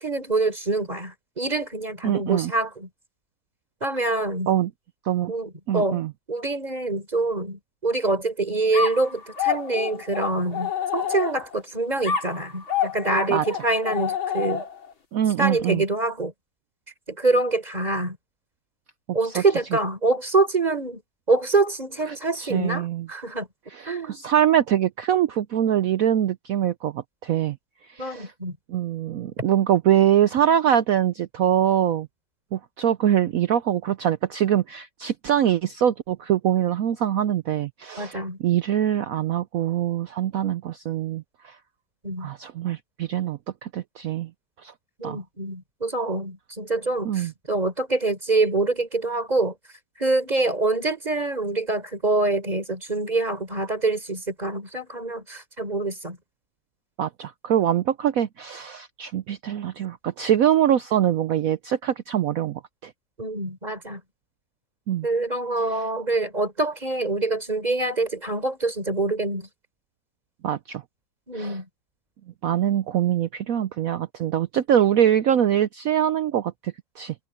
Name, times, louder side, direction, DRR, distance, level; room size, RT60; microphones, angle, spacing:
voice 1, 0.0-2.9 3.8-4.5 5.3-6.0 6.3-14.6 15.4-16.3 17.1-18.2 19.1-21.0 21.3-23.5 23.9-24.2 28.0-28.6 38.0-38.4 42.0-42.3 45.0-49.6 50.0-56.2 63.2-64.0 65.0-69.5 71.3-71.7, right 2 dB, 20° right, 4.3 m, -25 dB
voice 2, 2.0-2.5 4.5-4.7 5.0-5.3 5.7-6.1 13.3-13.4 15.1-15.8 19.2-19.4 22.4-23.1 23.7-27.6 27.9-28.3 28.7-32.1 32.5-41.6 42.2-44.3 44.6-44.7 45.0-45.2 47.0-47.3 57.0-62.9 64.9-65.1 65.7-65.9 70.4-70.8 71.3-71.6 72.4-77.1, right 10 dB, 75° right, 0.8 m, -23 dB
sound 1, 8.7-11.6 12.0-14.9, left 8 dB, 85° left, 4.4 m, -28 dB
omnidirectional pair, 2.1 m